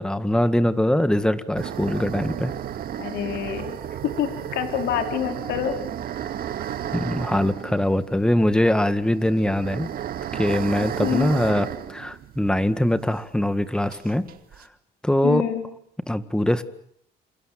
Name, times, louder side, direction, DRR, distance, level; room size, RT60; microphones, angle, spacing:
voice 1, 0.0-2.5 6.9-9.9 10.3-14.3 15.0-15.4 16.1-16.6, left 1 dB, 5° left, 12 dB, 1.9 m, -22 dB
sound 1, 1.6-13.0 13.2-13.3 13.9-14.6, right 10 dB, 60° right, 2.3 m, -33 dB
voice 2, 3.0-5.8 11.0-11.4 15.2-15.7, left 9 dB, 80° left, 6 dB, 4.6 m, -27 dB
28.5 x 27.0 x 7.8 m, 0.69 s
cardioid pair, 110°, 17 cm